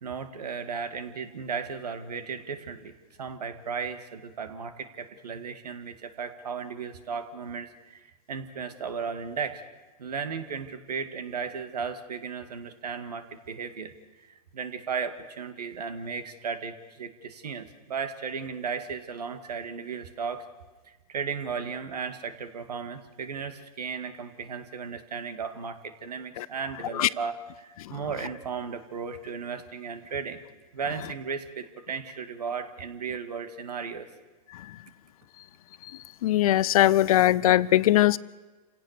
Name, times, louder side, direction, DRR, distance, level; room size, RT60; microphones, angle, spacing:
voice 1, 0.0-9.6 10.0-13.9 14.5-20.5 20.8-30.4 30.7-34.1, right 6 dB, 85° right, 9 dB, 2.2 m, -35 dB
voice 2, 36.2-38.2, left 14 dB, 65° left, 19 dB, 0.7 m, -20 dB
28.0 x 17.5 x 6.8 m, 1.3 s
hypercardioid pair, 125°, 20 cm